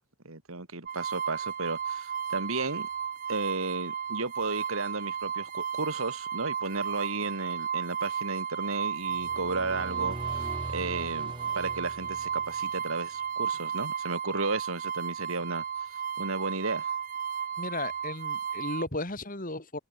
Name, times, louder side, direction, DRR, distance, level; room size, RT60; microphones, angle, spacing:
voice 1, 0.2-2.9 3.3-10.5 10.7-15.6 16.2-16.9, right 3 dB, 75° right, 2.7 m, -34 dB
sound 1, 0.9-18.9, right 8 dB, 40° right, 0.6 m, -34 dB
sound 2, 9.0-12.9, right 1 dB, 25° right, 1.2 m, -41 dB
voice 2, 17.6-19.8, left 2 dB, 40° left, 4.4 m, -35 dB
head